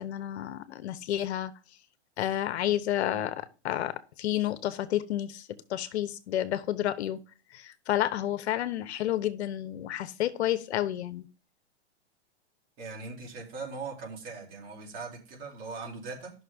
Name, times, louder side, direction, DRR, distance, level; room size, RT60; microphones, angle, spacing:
voice 1, 0.0-1.5 2.2-7.2 7.5-11.3, left 12 dB, 70° left, 1.0 m, -30 dB
voice 2, 12.8-16.3, right 4 dB, 55° right, 3.5 m, -40 dB
11.5 x 6.0 x 3.5 m
hypercardioid pair, 120°, 35 cm